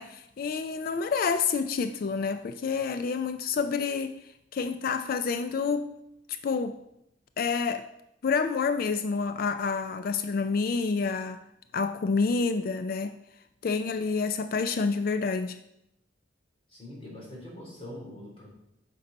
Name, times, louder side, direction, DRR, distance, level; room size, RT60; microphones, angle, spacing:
voice 1, 0.0-4.2 4.5-5.9 6.3-6.8 7.4-7.9 8.2-11.4 11.7-13.2 13.6-15.6, left 5 dB, 50° left, 0.3 m, -28 dB
voice 2, 16.7-18.5, left 1 dB, 30° left, 3.3 m, -43 dB
7.8 x 5.5 x 5.1 m
head